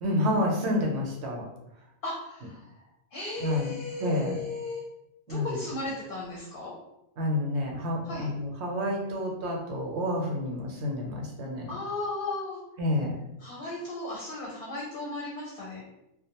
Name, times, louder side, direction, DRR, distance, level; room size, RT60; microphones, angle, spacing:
voice 1, 0.0-1.4 3.4-3.7 4.0-4.4 5.3-5.6 7.2-11.7 12.8-13.2, left 1 dB, 70° right, 0 dB, 0.8 m, -29 dB
voice 2, 2.0-2.6 3.1-4.9 5.3-6.7 8.1-8.3 11.7-12.6 13.4-15.8, left 2 dB, 60° left, -4 dB, 0.7 m, -35 dB
2.4 x 2.1 x 2.8 m, 0.87 s
omnidirectional pair, 1.2 m